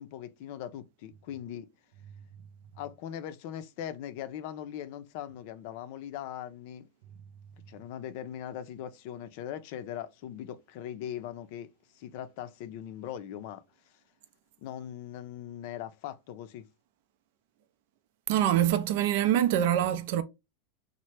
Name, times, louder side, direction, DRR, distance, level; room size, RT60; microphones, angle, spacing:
voice 1, 0.0-1.7 2.8-6.9 7.7-13.6 14.6-16.7, left 10 dB, 60° left, 0.4 m, -40 dB
voice 2, 18.3-20.2, right 11 dB, 65° right, 0.4 m, -25 dB
3.1 x 2.0 x 3.2 m
hypercardioid pair, 105°, 0 cm